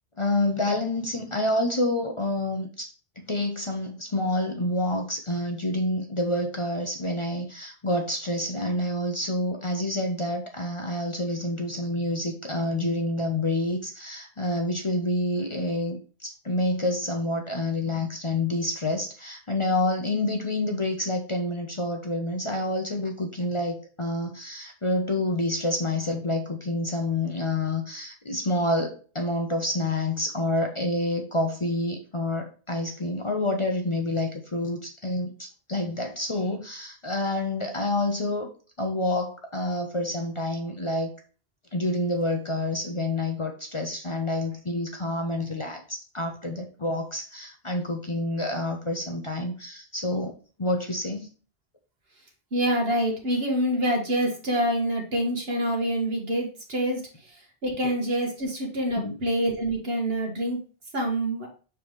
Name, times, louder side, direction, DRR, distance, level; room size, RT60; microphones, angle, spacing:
voice 1, 0.2-2.9 3.2-38.5 38.8-41.1 41.7-51.3 58.9-59.2, left 1 dB, 30° left, 2 dB, 0.8 m, -28 dB
voice 2, 52.5-60.6 60.9-61.5, right 1 dB, 65° right, 0 dB, 2.0 m, -26 dB
7.0 x 4.5 x 3.2 m, 0.37 s
omnidirectional pair, 1.1 m